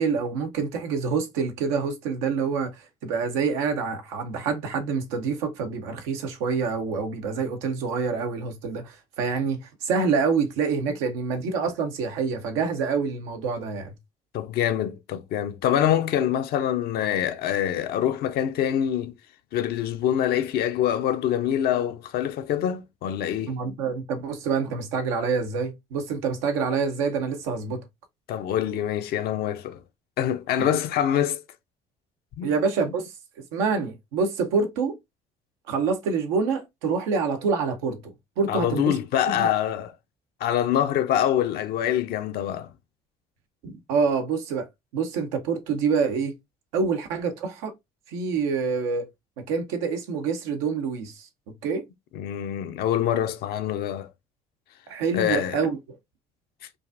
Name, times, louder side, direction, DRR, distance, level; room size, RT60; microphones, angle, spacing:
voice 1, 0.0-13.9 23.5-27.8 30.6-30.7 32.4-33.1 33.5-35.0 35.7-39.0 39.3-39.5 43.6-44.7 44.9-46.3 46.7-47.7 48.1-49.1 49.5-51.3 51.6-51.8 54.9-55.8, right 5 dB, 85° right, 0.8 m, -26 dB
voice 2, 14.3-19.1 19.5-23.6 28.3-29.8 30.2-31.4 32.4-32.5 38.5-39.9 40.4-42.7 52.1-54.1 55.1-55.6, left 10 dB, 65° left, 0.6 m, -25 dB
4.9 x 2.5 x 2.5 m
supercardioid pair, 70°, 17 cm